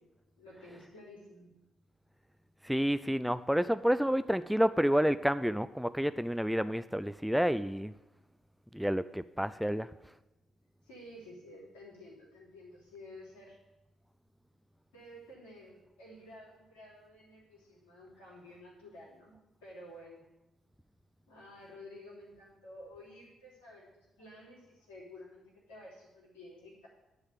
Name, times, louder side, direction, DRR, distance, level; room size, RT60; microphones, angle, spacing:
voice 1, 0.4-1.5 9.5-9.7 10.8-13.6 14.9-20.2 21.3-26.9, left 1 dB, 75° left, -7 dB, 3.1 m, -52 dB
voice 2, 2.6-7.9 8.7-9.9, equal, ahead, 13 dB, 0.4 m, -29 dB
10.5 x 4.8 x 8.0 m, 0.99 s
figure-of-eight pair, 40°, 0 cm